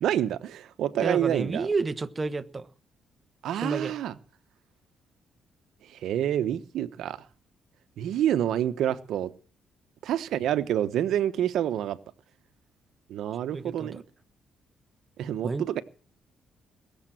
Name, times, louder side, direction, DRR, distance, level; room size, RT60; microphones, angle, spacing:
voice 1, 0.0-1.7 3.4-4.2 5.8-7.2 8.0-9.3 10.0-12.0 13.1-14.0 15.2-15.8, right 11 dB, 75° right, 1.0 m, -28 dB
voice 2, 1.0-2.7 3.6-3.9 13.5-14.0 15.4-15.7, right 3 dB, 25° right, 1.1 m, -30 dB
21.5 x 7.4 x 7.6 m
cardioid pair, 90°, 0 cm